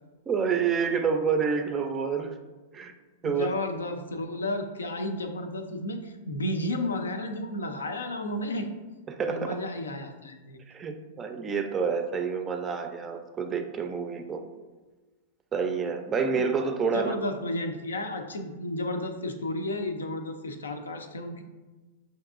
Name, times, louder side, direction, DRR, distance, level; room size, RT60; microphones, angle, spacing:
voice 1, 0.3-2.4 2.7-2.9 3.2-3.5 9.1-9.6 10.7-14.4 15.5-17.2, right 6 dB, 25° right, 6 dB, 0.4 m, -28 dB
voice 2, 3.2-8.7 9.3-10.6 16.9-21.4, left 1 dB, 85° left, 6 dB, 0.4 m, -32 dB
5.2 x 2.6 x 2.4 m, 1.2 s
hypercardioid pair, 105°, 0 cm